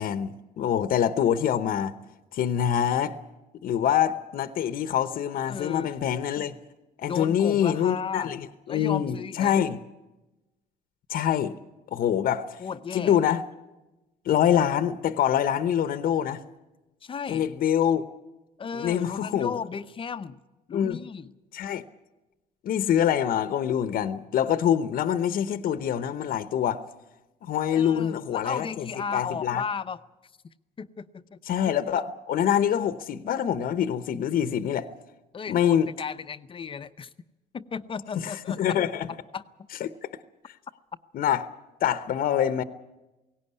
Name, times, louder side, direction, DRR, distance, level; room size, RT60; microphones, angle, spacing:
voice 1, 0.0-1.9 2.3-3.1 3.6-6.5 7.0-8.4 8.7-9.8 11.1-11.6 11.9-12.6 12.9-13.4 14.2-16.4 17.3-18.0 18.7-19.5 20.7-21.0 21.5-21.8 22.6-26.8 27.4-28.8 29.1-29.6 31.5-34.9 35.5-35.9 38.2-39.1 39.8-39.9 41.1-41.5 41.8-42.6, left 9 dB, 60° left, 0.9 m, -25 dB
voice 2, 5.5-5.9 7.0-8.3 8.7-9.6 12.6-13.2 17.0-17.5 18.6-20.4 20.7-21.3 27.7-30.0 30.8-31.4 35.3-37.1 37.5-38.6 39.3-39.4, left 6 dB, 30° left, 0.7 m, -34 dB
17.5 x 17.0 x 9.6 m
cardioid pair, 110°, 17 cm